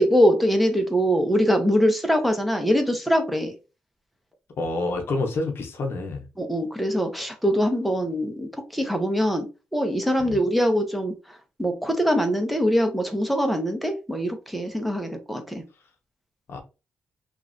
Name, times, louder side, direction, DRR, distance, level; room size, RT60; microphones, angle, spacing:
voice 1, 0.0-3.5 6.4-9.5 9.7-15.6, equal, ahead, 0.7 m, -23 dB
voice 2, 4.6-6.2 10.2-10.4 16.5-16.6, left 2 dB, 65° left, 0.7 m, -28 dB
3.0 x 2.4 x 2.5 m
cardioid pair, 80°, 4 cm